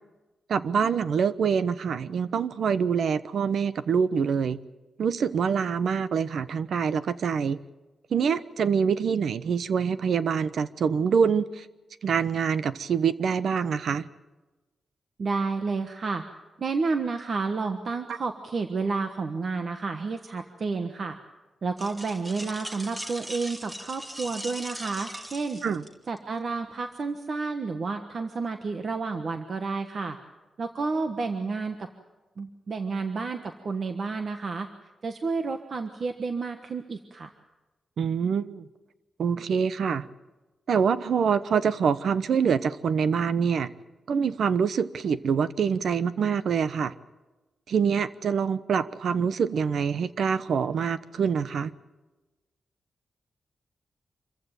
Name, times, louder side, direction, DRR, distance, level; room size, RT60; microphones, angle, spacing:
voice 1, 0.5-4.6 5.0-7.6 8.1-11.6 12.0-14.0 25.6-25.8 38.0-38.6 39.2-40.1 40.7-43.7 44.1-46.9 47.7-51.7, right 6 dB, 75° right, 14 dB, 0.9 m, -25 dB
voice 2, 15.2-16.2 16.6-21.2 21.6-25.6 26.1-30.2 30.6-31.9 32.4-34.7 35.0-37.3, right 4 dB, 50° right, 6 dB, 1.3 m, -30 dB
sound 1, 21.8-26.2, equal, 15° right, 1.9 m, -39 dB
26.0 x 15.0 x 9.1 m, 1.1 s
wide cardioid pair, 115°, 0 cm